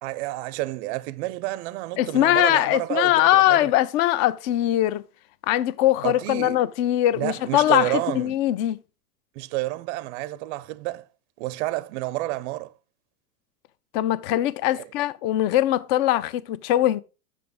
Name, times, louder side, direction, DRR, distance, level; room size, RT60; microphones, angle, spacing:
voice 1, 0.0-3.7 6.0-6.6 7.2-8.4 9.4-11.1 11.4-12.7 14.7-14.8, right 18 dB, 50° right, 0.5 m, -30 dB
voice 2, 2.0-5.0 5.5-8.8 13.9-17.0, left 14 dB, 40° left, 0.5 m, -21 dB
7.0 x 5.0 x 4.7 m
supercardioid pair, 130°, 47 cm